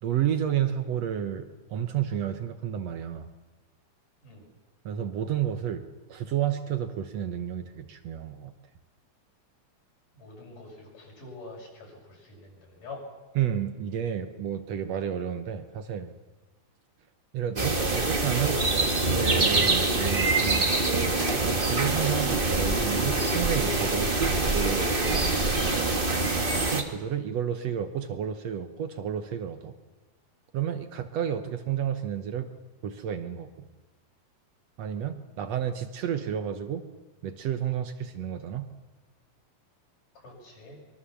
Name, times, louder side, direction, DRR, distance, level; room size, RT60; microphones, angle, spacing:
voice 1, 0.0-3.3 4.8-8.5 13.3-16.1 17.3-18.6 19.1-20.8 21.4-25.4 26.6-29.7 30.5-32.5 32.8-33.7 34.8-36.8 37.2-38.7, right 9 dB, 70° right, 9 dB, 1.6 m, -31 dB
voice 2, 10.1-13.0 40.2-40.8, left 3 dB, 60° left, -2 dB, 8.2 m, -45 dB
sound 1, 17.6-26.8, right 2 dB, 30° right, 0.9 m, -25 dB
24.5 x 23.0 x 7.1 m, 1.2 s
omnidirectional pair, 4.2 m